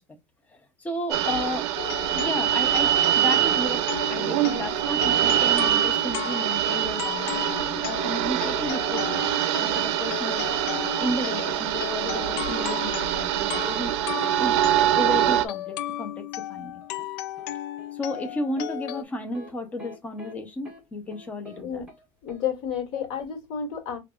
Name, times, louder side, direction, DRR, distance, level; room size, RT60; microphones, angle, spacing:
voice 1, 0.5-9.0 9.6-13.9 14.4-16.2 16.5-16.8 17.9-21.9 22.9-23.1, left 1 dB, 10° left, 0.6 m, -33 dB
sound 1, 1.1-15.5, right 12 dB, 80° right, 0.6 m, -24 dB
sound 2, 1.8-19.0, left 14 dB, 65° left, 0.4 m, -35 dB
sound 3, 16.8-18.3 18.6-18.7 19.3-19.5 19.8-20.3 20.6-20.8 21.1-21.6 21.9-22.0 22.3-22.4, right 1 dB, 5° right, 1.0 m, -46 dB
voice 2, 22.2-24.0, left 8 dB, 50° left, 1.7 m, -31 dB
5.2 x 2.3 x 2.3 m
cardioid pair, 180°, 14 cm